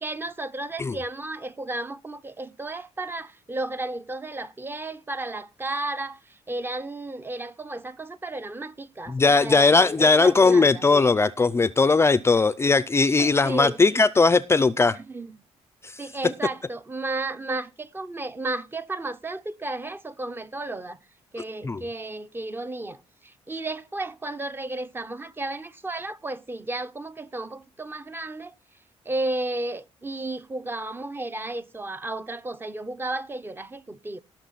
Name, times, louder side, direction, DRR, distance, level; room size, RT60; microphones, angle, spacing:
voice 1, 0.0-10.8 13.2-13.8 14.9-15.4 16.0-21.0 21.3-28.5 29.1-34.2, right 2 dB, 20° right, 0.8 m, -33 dB
voice 2, 9.1-15.0 15.8-15.9 21.6-21.8, left 4 dB, 20° left, 0.5 m, -19 dB
17.5 x 6.4 x 4.0 m
cardioid pair, 120°, 12 cm